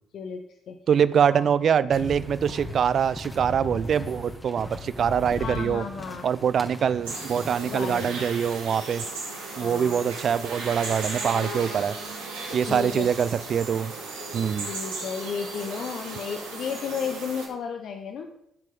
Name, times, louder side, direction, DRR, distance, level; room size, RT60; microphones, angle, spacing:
voice 1, 0.1-0.8 1.3-1.5 5.4-6.3 7.6-8.2 9.6-10.1 12.7-13.1 14.7-18.3, left 6 dB, 55° left, 6 dB, 1.1 m, -33 dB
voice 2, 0.9-5.8 6.2-9.1 9.6-11.9 12.5-13.9 14.3-14.7, right 8 dB, 50° right, 16 dB, 0.5 m, -24 dB
sound 1, 1.9-8.0, left 1 dB, 15° left, 2.6 m, -38 dB
sound 2, 7.0-17.5, right 3 dB, 80° right, 4.6 m, -36 dB
16.0 x 7.5 x 3.8 m, 0.79 s
figure-of-eight pair, 45°, 0 cm